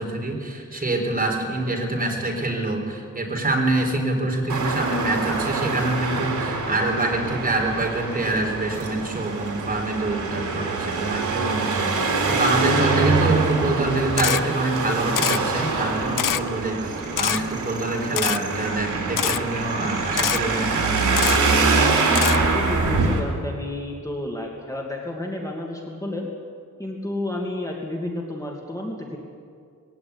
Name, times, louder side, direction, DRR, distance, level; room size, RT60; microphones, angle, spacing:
voice 1, 0.0-21.3, right 2 dB, 25° right, 1 dB, 4.0 m, -25 dB
Traffic noise roadway noise, 4.5-23.2, right 3 dB, 70° right, 3.8 m, -25 dB
Camera, 14.2-14.4 15.2-15.4 16.2-16.4 17.2-17.4 18.2-18.4 19.2-19.4 20.2-20.4 21.2-21.4 22.2-22.4, left 10 dB, 85° left, 0.7 m, -23 dB
voice 2, 22.2-26.3 26.8-29.2, left 1 dB, 10° left, -1 dB, 2.4 m, -31 dB
20.5 x 16.5 x 9.7 m, 2.2 s
wide cardioid pair, 150°, 31 cm